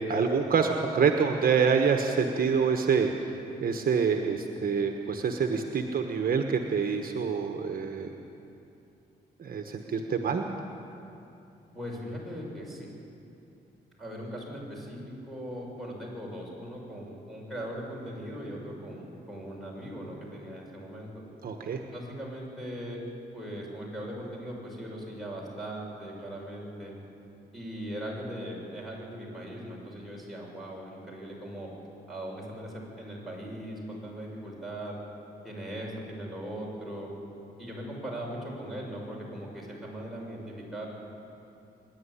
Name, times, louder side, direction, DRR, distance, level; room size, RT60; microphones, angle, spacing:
voice 1, 0.0-3.1 3.6-8.1 9.4-10.4 21.4-21.8, right 6 dB, 55° right, 4 dB, 1.3 m, -26 dB
voice 2, 11.7-12.9 14.0-21.2 21.9-23.0 23.3-27.0 27.5-31.7 32.1-35.0 35.4-37.1 37.6-40.9, equal, ahead, -4 dB, 6.5 m, -39 dB
23.5 x 11.0 x 10.0 m, 2.8 s
cardioid pair, 90°, 18 cm